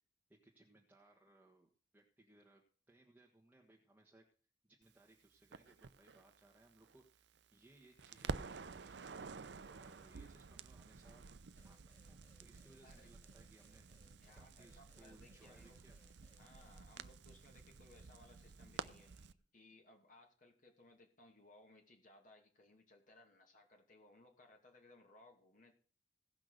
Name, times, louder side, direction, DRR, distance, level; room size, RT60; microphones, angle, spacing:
voice 1, 0.3-4.2 4.6-11.2 11.6-13.9 14.3-16.0 18.7-19.3, right 2 dB, 10° right, -1 dB, 1.5 m, -67 dB
Crackle, 5.5-7.7 8.0-19.3, right 4 dB, 70° right, 0.6 m, -50 dB
sound 1, 11.6-16.8, left 1 dB, 15° left, 2.6 m, -71 dB
voice 2, 14.0-15.8 16.4-19.2 19.5-25.7, left 2 dB, 45° left, 2 dB, 2.5 m, -64 dB
17.0 x 6.0 x 6.5 m, 0.40 s
head